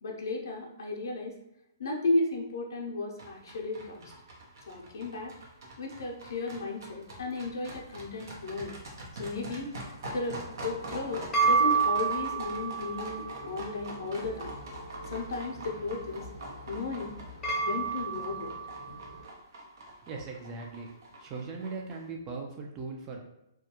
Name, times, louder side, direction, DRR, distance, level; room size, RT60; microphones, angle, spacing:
voice 1, 0.0-1.4 1.8-4.1 4.7-5.3 5.8-8.7 9.2-9.7 10.1-14.5 15.1-16.3 16.7-17.1 17.5-18.5, left 3 dB, 70° left, -1 dB, 0.6 m, -34 dB
sound 1, 3.2-22.0, right 1 dB, 65° right, 0.7 m, -44 dB
sound 2, 10.8-19.2, right 5 dB, 15° left, 0.6 m, -32 dB
voice 2, 20.0-20.9 21.2-23.2, right 4 dB, 25° right, 1 dB, 0.4 m, -39 dB
2.3 x 2.2 x 2.9 m, 0.86 s
hypercardioid pair, 145°, 2 cm